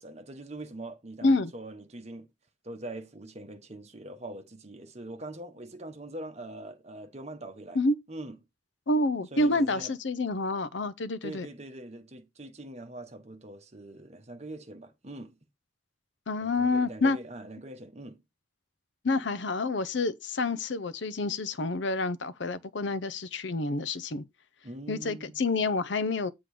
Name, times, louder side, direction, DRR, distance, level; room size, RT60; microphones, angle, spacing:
voice 1, 0.0-2.3 2.6-7.8 8.1-8.4 9.3-9.9 11.2-15.4 16.4-18.2 24.6-25.4, right 1 dB, 35° right, 1.2 m, -43 dB
voice 2, 1.2-1.5 7.7-7.9 8.9-11.5 16.3-17.2 19.0-24.2 24.9-26.3, left 2 dB, 65° left, 0.7 m, -28 dB
7.7 x 3.8 x 4.9 m
head